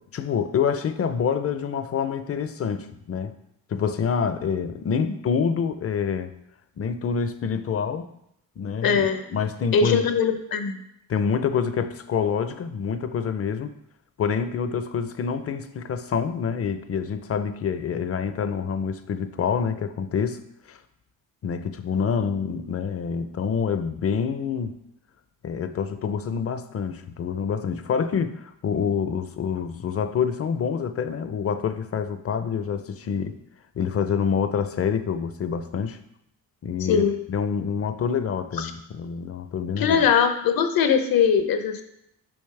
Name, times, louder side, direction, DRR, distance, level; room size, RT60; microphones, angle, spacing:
voice 1, 0.1-3.3 3.7-6.3 6.8-8.1 8.6-10.1 11.1-13.7 14.2-20.4 20.7-20.8 21.4-24.7 25.4-33.4 33.8-36.0 36.6-40.1, left 6 dB, 40° left, 10 dB, 0.5 m, -27 dB
voice 2, 8.8-9.2 9.7-10.8 36.9-37.2 38.6-38.7 39.8-41.8, left 7 dB, 70° left, 8 dB, 0.8 m, -21 dB
7.1 x 5.1 x 3.3 m, 0.77 s
cardioid pair, 105°, 37 cm